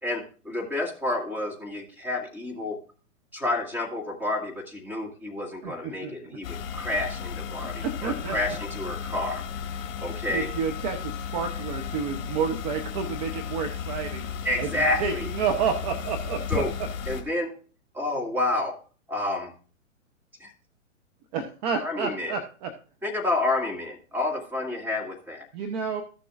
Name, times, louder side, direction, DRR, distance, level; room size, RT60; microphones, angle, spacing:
voice 1, 0.0-2.8 3.3-6.5 6.7-9.4 10.0-10.5 14.4-15.3 16.5-16.7 17.1-17.5 17.9-18.8 19.1-19.5 20.4-20.5 21.8-22.3 23.0-25.4, left 2 dB, 5° right, 0 dB, 2.1 m, -29 dB
voice 2, 5.6-6.1 7.8-8.4 10.0-14.3 14.6-16.6 21.3-22.7 25.5-26.0, right 6 dB, 35° right, 5 dB, 1.0 m, -30 dB
sound 1, 6.4-17.2, left 7 dB, 40° left, 1.8 m, -34 dB
14.5 x 6.8 x 2.5 m, 0.37 s
hypercardioid pair, 125°, 40 cm